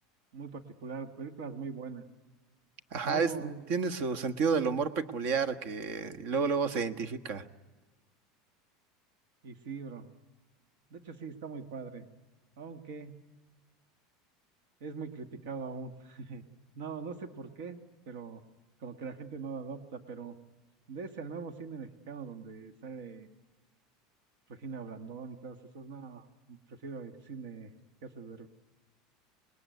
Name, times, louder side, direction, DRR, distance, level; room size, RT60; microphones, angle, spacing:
voice 1, 0.3-2.0 3.0-3.6 4.2-4.3 9.4-10.1 10.9-12.1 12.6-13.2 14.8-16.4 16.8-17.8 18.1-18.4 18.8-20.4 20.9-23.3 24.5-27.7 28.0-28.5, right 5 dB, 75° right, 8 dB, 1.8 m, -42 dB
voice 2, 2.9-7.4, right 5 dB, 60° right, 10 dB, 1.4 m, -30 dB
27.0 x 20.5 x 9.5 m, 1.2 s
supercardioid pair, 145°, 0 cm